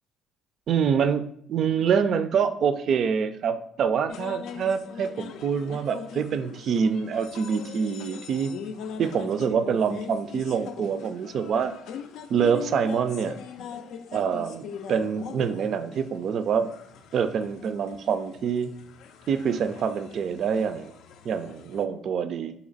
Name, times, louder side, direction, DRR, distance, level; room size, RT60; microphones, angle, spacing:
voice 1, 0.7-1.2 1.5-8.5 9.0-11.7 12.3-13.4 14.1-16.7 17.1-18.7 19.3-20.9 21.3-22.5, right 7 dB, 60° right, 11 dB, 0.4 m, -26 dB
sound 1, 4.1-21.8, left 6 dB, 75° left, 0.4 m, -42 dB
4.1 x 2.9 x 3.9 m, 0.67 s
supercardioid pair, 85°, 0 cm